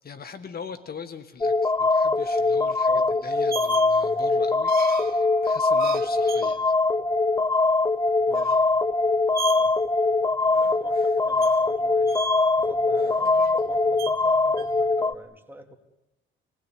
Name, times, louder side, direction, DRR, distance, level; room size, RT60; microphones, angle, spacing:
voice 1, 0.0-6.7, left 6 dB, 50° left, 10 dB, 1.9 m, -41 dB
sound 1, 1.4-15.1, left 3 dB, 20° left, 0.8 m, -22 dB
sound 2, 1.5-14.9, right 7 dB, 50° right, 2.5 m, -40 dB
voice 2, 2.9-3.2 8.3-8.5 9.5-9.8 10.4-12.1 12.6-15.7, right 2 dB, 10° right, 4 dB, 3.5 m, -44 dB
27.5 x 19.5 x 9.6 m, 0.93 s
cardioid pair, 90°, 20 cm